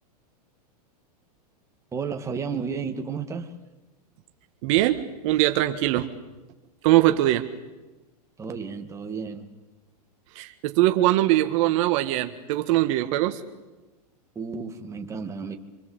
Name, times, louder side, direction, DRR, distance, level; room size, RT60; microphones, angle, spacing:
voice 1, 1.9-3.6 8.4-9.5 13.2-13.4 14.4-15.5, right 5 dB, 15° right, 2.3 m, -32 dB
voice 2, 4.6-6.1 6.8-7.5 10.4-13.4, right 15 dB, 50° right, 1.7 m, -22 dB
27.0 x 25.0 x 8.3 m
hypercardioid pair, 140°, 21 cm